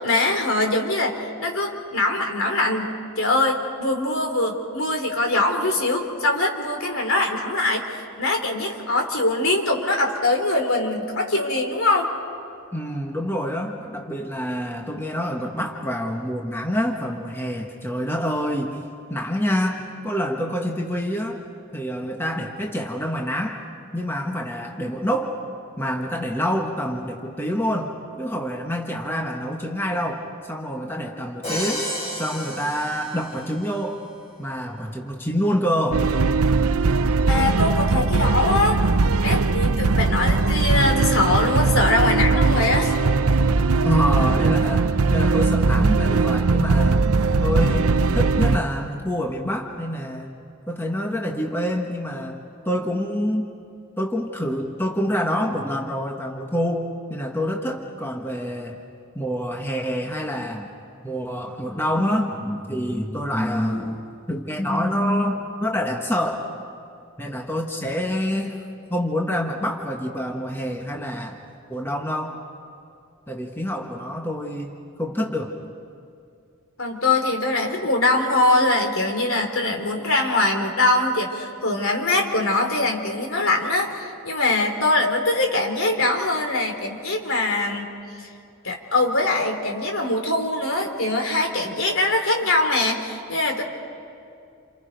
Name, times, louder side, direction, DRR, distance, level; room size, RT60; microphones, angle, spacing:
voice 1, 0.0-12.1 37.3-38.8 39.2-42.9 76.8-87.9 88.2-88.3 88.6-93.6, left 2 dB, 65° left, 3 dB, 3.2 m, -22 dB
voice 2, 12.7-18.8 19.1-21.4 21.7-23.6 23.9-25.4 25.8-31.9 32.1-34.0 34.4-36.1 43.8-47.0 47.4-50.3 50.7-52.4 52.6-53.5 54.0-58.8 59.1-60.7 61.0-66.4 67.2-68.6 68.9-71.4 71.7-72.4 73.3-74.7 75.0-75.5, equal, 10° left, 1 dB, 1.3 m, -26 dB
Crash cymbal, 31.4-33.6, equal, 25° left, 7.4 m, -31 dB
sound 1, 35.9-48.6, right 3 dB, 75° right, 0.7 m, -20 dB
29.0 x 28.5 x 5.2 m, 2.5 s
head